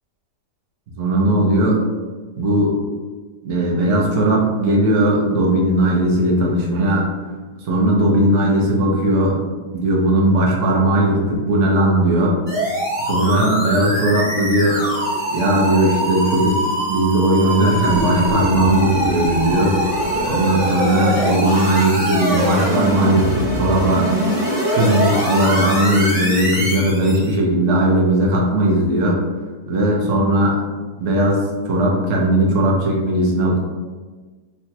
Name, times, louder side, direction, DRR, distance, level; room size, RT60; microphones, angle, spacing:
voice 1, 1.0-1.8 2.4-2.8 3.4-7.1 7.6-9.4 9.7-12.4 13.0-14.8 15.3-16.6 16.9-19.8 20.3-24.1 24.7-29.2 29.7-30.6 31.0-33.6, right 1 dB, 60° right, -2 dB, 0.8 m, -17 dB
sound 1, 12.5-27.3, right 1 dB, 25° right, 0.7 m, -22 dB
3.9 x 2.2 x 2.7 m, 1.4 s
omnidirectional pair, 1.9 m